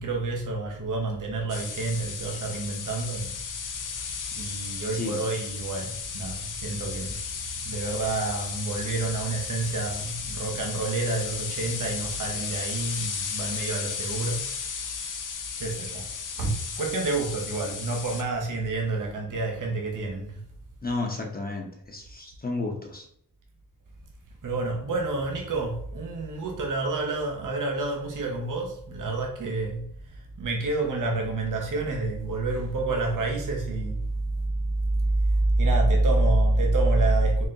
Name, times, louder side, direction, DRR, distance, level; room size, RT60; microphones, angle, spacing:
voice 1, 0.0-3.4 3.7-4.0 4.3-7.2 7.5-14.5 15.6-16.1 16.4-20.4 24.4-34.0 34.3-34.4 35.0-37.5, right 2 dB, 60° right, 1 dB, 0.8 m, -28 dB
sound 1, 1.5-18.2, left 6 dB, 60° left, 0.6 m, -35 dB
voice 2, 20.8-23.1, left 3 dB, 25° left, 1 dB, 0.9 m, -32 dB
4.0 x 2.1 x 3.8 m, 0.66 s
cardioid pair, 55°, 36 cm